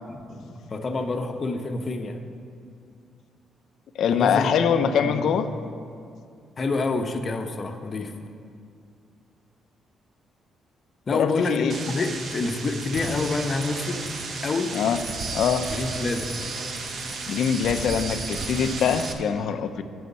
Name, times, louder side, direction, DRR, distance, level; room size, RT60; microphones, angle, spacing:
voice 1, 0.1-2.2 4.1-5.3 6.6-8.1 11.1-14.0 14.4-14.8 15.7-16.3, left 3 dB, 40° left, 6 dB, 1.0 m, -28 dB
voice 2, 4.0-5.5 11.1-11.7 14.7-15.0 15.3-15.7 17.3-19.8, left 7 dB, 70° left, 10 dB, 0.6 m, -23 dB
sound 1, 11.7-19.1, right 3 dB, 55° right, 1.1 m, -33 dB
9.4 x 6.5 x 8.3 m, 2.3 s
cardioid pair, 90°, 0 cm